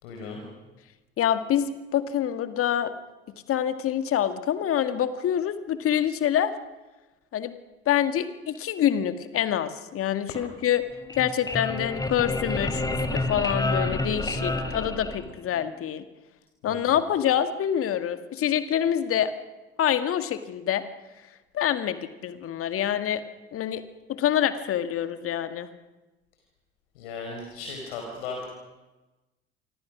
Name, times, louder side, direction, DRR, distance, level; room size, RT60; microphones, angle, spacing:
voice 1, 0.0-0.4 16.7-17.0 26.9-28.5, left 4 dB, 70° left, 2 dB, 4.8 m, -37 dB
voice 2, 1.2-2.9 3.5-6.5 7.3-7.6 7.9-10.8 11.2-16.1 16.6-19.3 19.8-20.8 21.5-23.2 23.5-23.8 24.1-25.7, left 10 dB, 45° left, 10 dB, 2.0 m, -26 dB
sound 1, 10.9-15.6, left 2 dB, 10° left, 3.6 m, -29 dB
29.5 x 25.0 x 6.3 m, 1.1 s
figure-of-eight pair, 55°, 30 cm